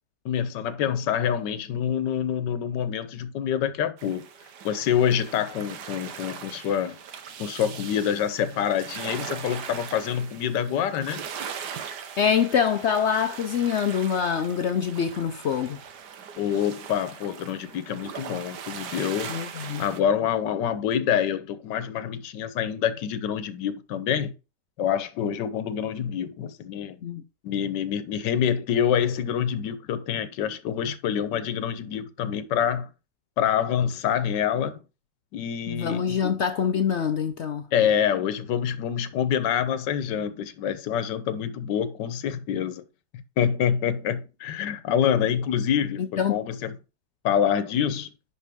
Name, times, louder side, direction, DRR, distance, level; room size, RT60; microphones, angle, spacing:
voice 1, 0.2-4.3 4.6-6.9 7.4-11.2 16.4-19.4 19.8-24.3 24.8-27.0 27.4-32.9 33.4-34.8 35.3-36.3 37.7-42.8 43.4-46.7 47.2-48.1, left 8 dB, 90° left, 1.5 m, -26 dB
sound 1, 4.0-20.0, right 7 dB, 75° right, 1.5 m, -40 dB
voice 2, 12.2-15.8 19.3-19.8 27.0-27.2 35.7-37.7 46.0-46.4, left 7 dB, 75° left, 0.6 m, -25 dB
11.0 x 4.7 x 3.5 m
omnidirectional pair, 1.8 m